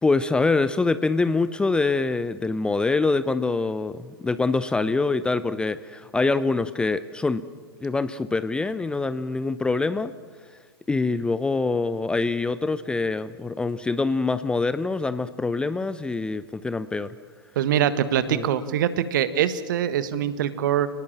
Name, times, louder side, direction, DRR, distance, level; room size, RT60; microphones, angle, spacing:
voice 1, 0.0-7.5 7.8-10.1 10.9-17.1 18.3-18.5, left 3 dB, 5° left, 14 dB, 0.6 m, -25 dB
voice 2, 17.5-20.9, right 10 dB, 50° right, 13 dB, 1.5 m, -23 dB
29.0 x 19.0 x 7.3 m, 1.5 s
figure-of-eight pair, 105°, 13 cm